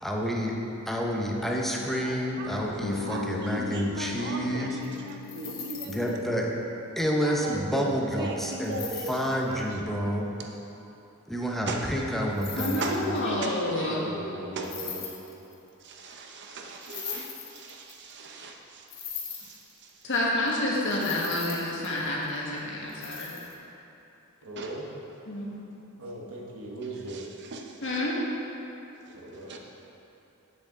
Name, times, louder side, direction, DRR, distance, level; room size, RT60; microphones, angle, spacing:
voice 1, 0.0-0.6 0.9-4.8 5.8-6.5 7.0-8.8 9.1-10.3 11.3-13.2, equal, ahead, -1 dB, 0.7 m, -29 dB
voice 2, 2.0-6.2 7.2-9.6 10.4-10.5 11.7-11.8 12.5-13.9 14.3-15.1 15.8-18.8 19.3-19.9 24.6-24.7 26.0-26.1 26.8-27.7 29.1-29.2 29.5-29.6, right 2 dB, 55° right, 2 dB, 0.7 m, -38 dB
Bass guitar, 2.8-6.9, left 6 dB, 90° left, 1.0 m, -38 dB
sound 1, 4.8-6.1 8.6-9.4 12.4-13.3 14.6-15.7 16.8-18.1 18.9-20.2 20.5-20.6 20.8-22.4 22.9-23.6, left 7 dB, 45° left, 1.1 m, -39 dB
voice 3, 12.6-14.1 20.0-23.3 25.3-25.6 27.8-28.1, left 1 dB, 60° left, -4 dB, 1.4 m, -29 dB
voice 4, 13.8-15.0 24.4-24.9 26.0-27.2 29.1-29.6, right 1 dB, 85° right, -2 dB, 1.3 m, -39 dB
7.7 x 6.8 x 3.7 m, 3.0 s
head